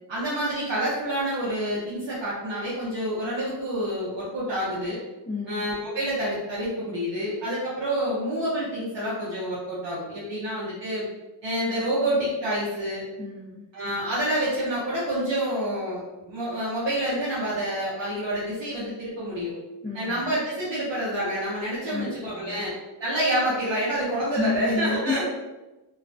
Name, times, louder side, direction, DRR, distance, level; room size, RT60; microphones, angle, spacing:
voice 1, 0.1-5.0 5.5-11.0 11.4-13.0 13.7-19.5 19.9-22.7 23.0-25.2, equal, 75° right, -8 dB, 0.7 m, -28 dB
voice 2, 5.3-5.6 13.2-13.7 19.8-20.2 21.9-22.6 24.3-25.2, left 3 dB, 20° left, -8 dB, 0.6 m, -30 dB
2.4 x 2.1 x 2.5 m, 1.1 s
wide cardioid pair, 55°, 44 cm